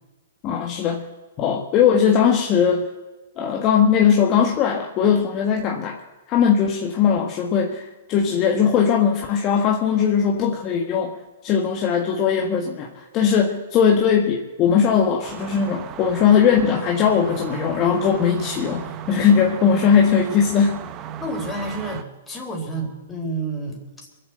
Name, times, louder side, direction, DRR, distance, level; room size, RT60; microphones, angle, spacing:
voice 1, 0.4-1.1 1.4-2.9 3.4-6.0 6.3-11.2 11.4-20.8, left 7 dB, 35° left, 2 dB, 1.5 m, -19 dB
sound 1, 15.2-22.0, right 10 dB, 30° right, 0.9 m, -36 dB
voice 2, 21.2-24.1, right 2 dB, 10° left, 0 dB, 4.0 m, -30 dB
23.0 x 7.8 x 7.9 m, 1.2 s
hypercardioid pair, 130°, 0 cm